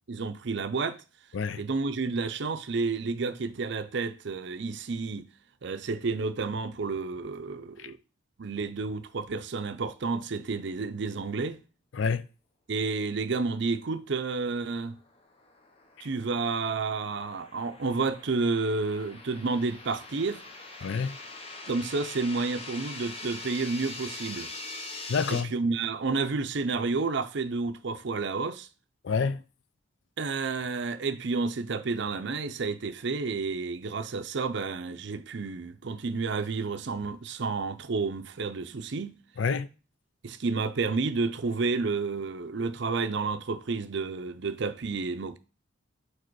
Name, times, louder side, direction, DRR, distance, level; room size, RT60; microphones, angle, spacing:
voice 1, 0.1-1.0 1.6-5.3 5.6-8.0 8.4-11.6 12.7-15.0 16.0-20.4 21.7-24.5 25.3-28.7 30.2-39.2 40.2-45.4, right 4 dB, 55° right, 0.5 m, -30 dB
voice 2, 11.9-12.3 16.0-16.1 20.8-21.2 25.1-25.5 29.0-29.4 39.4-39.7, left 5 dB, 65° left, 0.4 m, -28 dB
sound 1, 15.0-25.4, left 3 dB, 30° left, 0.7 m, -43 dB
5.0 x 4.3 x 4.6 m
head